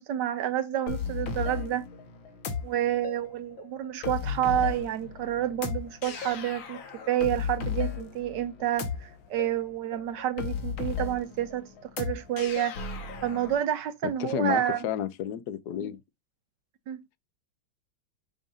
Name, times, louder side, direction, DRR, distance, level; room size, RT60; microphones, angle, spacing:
voice 1, 0.0-1.9 2.6-11.7 12.0-12.7 13.2-14.9 16.9-17.0, right 11 dB, 70° right, 1.1 m, -29 dB
sound 1, 0.9-13.6, left 6 dB, 85° left, 2.0 m, -35 dB
voice 2, 14.0-16.0, left 10 dB, 65° left, 1.0 m, -31 dB
7.1 x 2.5 x 5.5 m
omnidirectional pair, 2.2 m